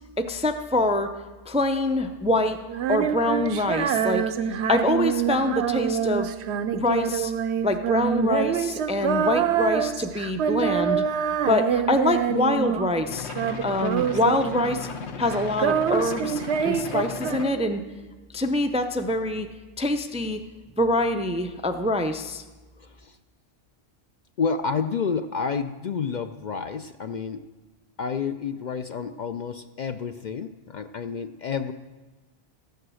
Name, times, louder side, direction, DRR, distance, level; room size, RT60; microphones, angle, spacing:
voice 1, 0.2-1.1 1.5-2.6 2.9-4.2 4.7-6.3 6.7-7.3 7.6-11.0 11.5-13.3 13.6-14.9 15.2-17.8 18.3-19.5 19.8-20.4 20.8-22.4, left 2 dB, 10° right, 7 dB, 0.4 m, -25 dB
Female singing, 2.7-13.0 13.3-15.0 15.2-17.9, right 8 dB, 80° right, 0.9 m, -26 dB
sound 1, 13.1-17.6, left 6 dB, 85° left, 1.2 m, -36 dB
voice 2, 22.8-23.2 24.4-27.4 28.0-31.7, left 5 dB, 55° left, 9 dB, 0.5 m, -30 dB
14.5 x 9.3 x 6.3 m, 1.2 s
omnidirectional pair, 1.1 m